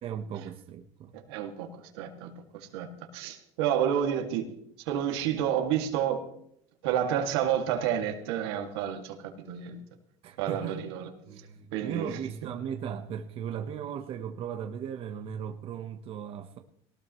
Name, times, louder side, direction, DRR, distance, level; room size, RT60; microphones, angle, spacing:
voice 1, 0.0-1.1 10.2-16.6, right 8 dB, 45° right, 1.2 m, -37 dB
voice 2, 1.1-1.7 1.9-4.5 4.9-6.3 6.8-9.2 9.4-9.8 10.4-11.1 11.7-12.1, right 9 dB, 90° right, 2.3 m, -30 dB
18.5 x 18.0 x 3.2 m
supercardioid pair, 125°, 13 cm